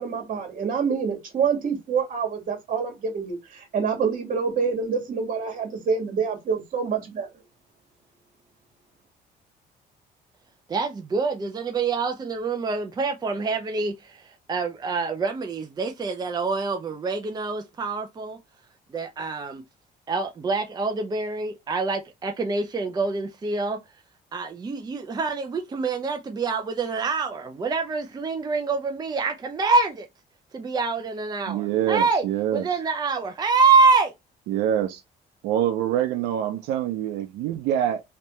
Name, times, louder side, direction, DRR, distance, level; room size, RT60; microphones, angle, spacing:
voice 1, 0.0-7.3, right 6 dB, 50° right, 1.9 m, -26 dB
voice 2, 10.7-18.4 18.9-19.6 20.1-23.8 24.3-30.1 30.5-32.2 32.5-34.1, right 4 dB, 25° right, 0.6 m, -25 dB
voice 3, 31.5-32.7 34.5-35.0 35.4-38.0, right 11 dB, 90° right, 0.6 m, -25 dB
3.2 x 2.9 x 3.1 m
cardioid pair, 110°, 17 cm